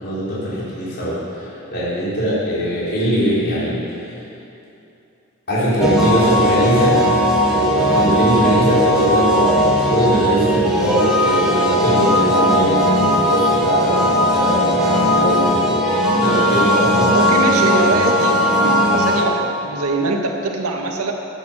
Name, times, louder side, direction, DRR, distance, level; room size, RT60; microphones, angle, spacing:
voice 1, 0.0-3.8 4.1-4.2 5.5-7.0 7.4-17.3 17.7-18.0, equal, 45° left, -9 dB, 3.9 m, -21 dB
sound 1, 5.8-19.2, equal, 5° right, 1.6 m, -17 dB
voice 2, 17.1-21.1, right 2 dB, 90° right, 1 dB, 1.7 m, -22 dB
13.0 x 8.5 x 7.3 m, 2.7 s
head